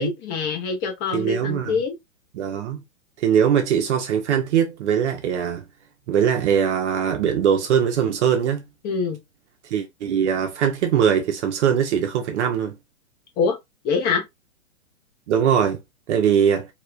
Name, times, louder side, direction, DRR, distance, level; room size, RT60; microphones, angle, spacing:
voice 1, 0.0-2.0 8.8-9.2 13.4-13.6 13.8-14.2, left 5 dB, 25° left, 0.7 m, -24 dB
voice 2, 1.1-1.8 2.3-2.8 3.2-5.6 6.1-8.6 9.6-12.8 15.3-15.8 16.1-16.7, right 8 dB, 55° right, 0.7 m, -21 dB
3.2 x 2.8 x 2.3 m
hypercardioid pair, 130°, 43 cm